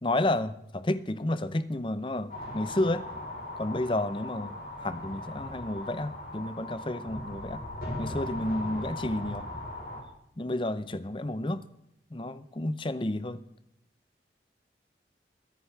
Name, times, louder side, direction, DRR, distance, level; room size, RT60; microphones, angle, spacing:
voice 1, 0.0-3.1 3.6-4.5 4.8-7.6 8.0-9.5 10.4-11.6 12.1-13.4, left 1 dB, 30° left, 0.7 m, -31 dB
sound 1, 2.3-10.0, left 1 dB, 55° left, 4.3 m, -38 dB
23.0 x 10.5 x 3.4 m
head